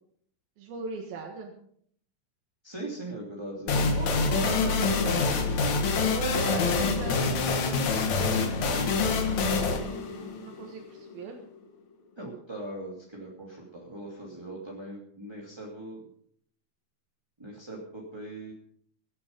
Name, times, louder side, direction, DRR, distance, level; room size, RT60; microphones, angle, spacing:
voice 1, 0.6-1.5 4.0-5.1 6.1-9.1 9.5-11.4, right 5 dB, 85° right, 0 dB, 3.6 m, -39 dB
voice 2, 2.6-5.5 12.2-16.0 17.4-18.5, right 1 dB, 10° right, -2 dB, 2.2 m, -40 dB
sound 1, 3.7-11.1, left 4 dB, 55° left, 2.8 m, -26 dB
24.5 x 8.5 x 5.3 m, 0.64 s
omnidirectional pair, 4.1 m